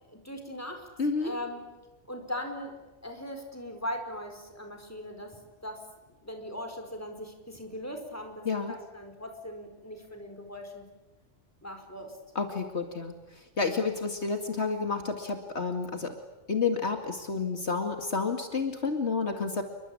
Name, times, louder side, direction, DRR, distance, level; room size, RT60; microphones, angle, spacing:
voice 1, 0.1-0.9 1.2-1.6 2.1-5.8 6.2-10.9 11.6-12.1, equal, 10° left, 4 dB, 4.9 m, -39 dB
voice 2, 1.0-1.3 8.4-8.7 12.4-16.2 16.5-19.6, left 4 dB, 65° left, 5 dB, 2.5 m, -30 dB
29.0 x 23.5 x 8.7 m, 1.1 s
omnidirectional pair, 1.2 m